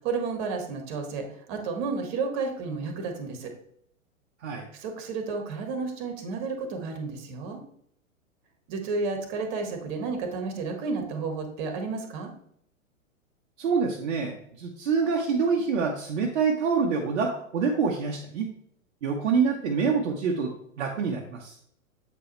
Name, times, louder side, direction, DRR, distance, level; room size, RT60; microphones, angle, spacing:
voice 1, 0.0-3.5 4.7-7.6 8.7-12.3, right 4 dB, 35° right, 5 dB, 1.5 m, -32 dB
voice 2, 13.6-18.5 19.0-21.6, right 5 dB, 55° right, 0 dB, 1.0 m, -26 dB
7.7 x 4.7 x 3.1 m, 0.68 s
figure-of-eight pair, 110°, 42 cm